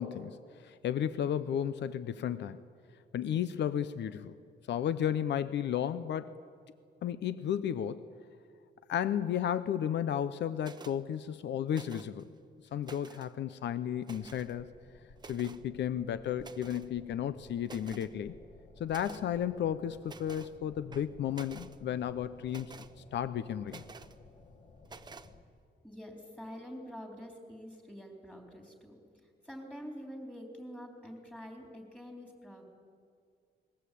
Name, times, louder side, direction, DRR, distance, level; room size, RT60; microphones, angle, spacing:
voice 1, 0.0-2.6 3.1-4.3 4.7-6.3 7.0-8.1 8.9-12.3 12.7-14.7 15.3-18.3 18.8-22.7 23.1-23.8, left 9 dB, 80° left, 13 dB, 0.8 m, -33 dB
sound 1, 10.6-11.0 11.7-12.2 12.7-13.3 14.0-14.5 15.2-15.6 16.4-16.9 17.3-17.4 17.6-18.1 18.9-19.2 20.0-20.5 20.9-21.8 22.5-22.9 23.7-24.1 24.8-25.3, right 4 dB, 25° right, 0.9 m, -50 dB
sound 2, 14.1-25.4, left 3 dB, 40° left, 1.8 m, -56 dB
voice 2, 25.8-32.7, equal, 5° left, 2 dB, 3.8 m, -46 dB
29.0 x 21.0 x 8.5 m, 2.2 s
wide cardioid pair, 165°, 18 cm